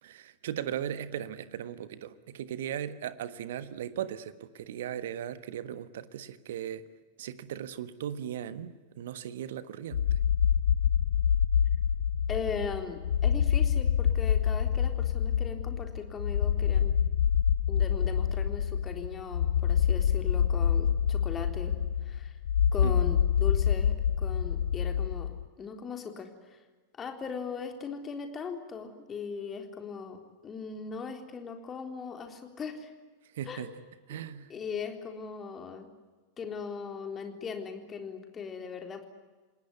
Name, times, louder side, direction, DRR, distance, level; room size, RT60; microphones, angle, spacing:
voice 1, 0.0-6.8 7.2-10.2 22.8-23.0 33.3-33.7 34.1-34.5, right 10 dB, 55° right, 14 dB, 1.4 m, -37 dB
sound 1, 9.9-25.5, left 8 dB, 65° left, 0.8 m, -26 dB
voice 2, 12.3-16.9 17.7-21.8 22.0-22.4 22.7-26.6 27.0-30.2 30.4-32.9 33.5-33.7 34.5-35.9 36.4-39.1, left 5 dB, 20° left, 5 dB, 3.7 m, -39 dB
28.0 x 20.0 x 9.8 m, 1.3 s
figure-of-eight pair, 90°, 0 cm